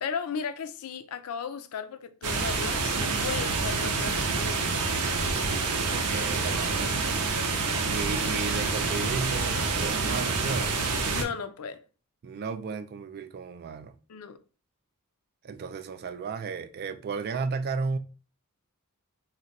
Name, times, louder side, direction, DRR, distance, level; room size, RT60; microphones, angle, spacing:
voice 1, 0.0-4.9 11.1-11.8 14.1-14.4, left 6 dB, 70° left, 0.4 m, -36 dB
sound 1, 2.2-11.2, right 4 dB, 85° right, 0.6 m, -27 dB
voice 2, 5.8-7.3 7.9-10.8 12.2-13.9 15.4-18.0, right 4 dB, 45° right, 0.3 m, -34 dB
2.5 x 2.1 x 3.9 m
head